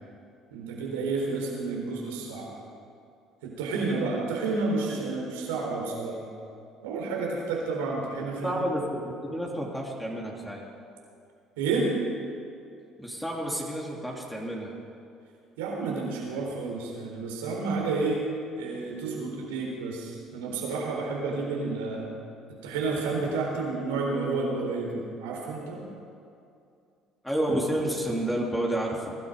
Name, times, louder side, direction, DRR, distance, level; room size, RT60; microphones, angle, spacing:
voice 1, 0.5-2.5 3.4-6.2 6.8-8.7 11.6-11.9 15.6-18.2 18.6-22.1 22.6-25.8, right 3 dB, 90° right, -1 dB, 3.9 m, -30 dB
voice 2, 8.4-8.8 9.3-10.6 13.0-14.7 27.2-29.2, right 1 dB, 5° left, -2 dB, 3.0 m, -30 dB
22.0 x 12.5 x 5.2 m, 2.5 s
supercardioid pair, 70°, 0 cm